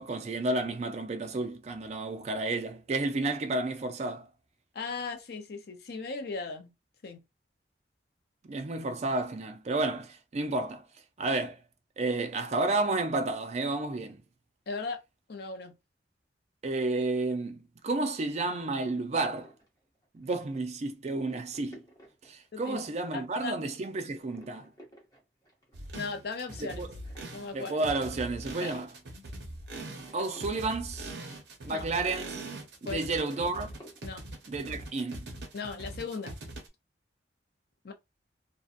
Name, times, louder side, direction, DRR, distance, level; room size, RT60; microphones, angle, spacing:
voice 1, 0.0-4.3 8.4-10.8 11.2-11.6 12.0-14.2 16.6-19.5 20.1-21.8 22.2-24.7 26.6-26.9 27.5-28.9 30.1-31.1 31.6-32.5 32.8-33.7 34.5-35.3, right 2 dB, 40° right, 0.4 m, -31 dB
voice 2, 4.7-6.7 7.0-7.2 14.7-15.0 15.3-15.7 22.5-22.8 23.1-23.5 25.9-26.8 27.3-27.7 28.6-28.8 31.7-31.9 32.9-33.0 34.0-34.2 35.5-36.3 37.8-37.9, left 4 dB, 60° left, 0.5 m, -37 dB
sound 1, 19.4-23.0 23.5-23.8 24.1-32.8 33.1-34.1, equal, 20° left, 0.8 m, -56 dB
sound 2, 25.7-36.7, right 1 dB, 65° right, 0.7 m, -42 dB
2.6 x 2.2 x 2.4 m
head